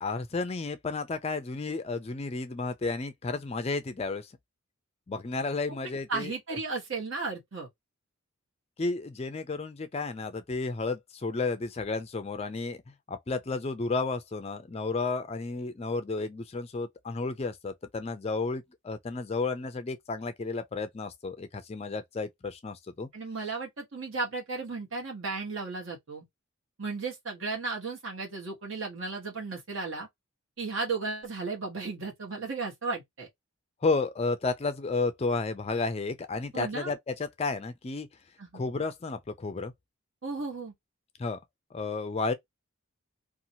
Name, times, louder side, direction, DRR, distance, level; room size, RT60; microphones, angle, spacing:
voice 1, 0.0-4.3 5.1-6.3 8.8-12.8 13.1-23.1 33.8-38.1 38.5-39.7 41.2-41.4 41.7-42.3, left 3 dB, 30° left, 0.4 m, -32 dB
voice 2, 5.8-7.7 23.1-26.2 26.8-30.1 30.6-33.3 36.5-36.9 38.4-38.6 40.2-40.7, right 4 dB, 60° right, 1.2 m, -35 dB
2.7 x 2.4 x 2.7 m
head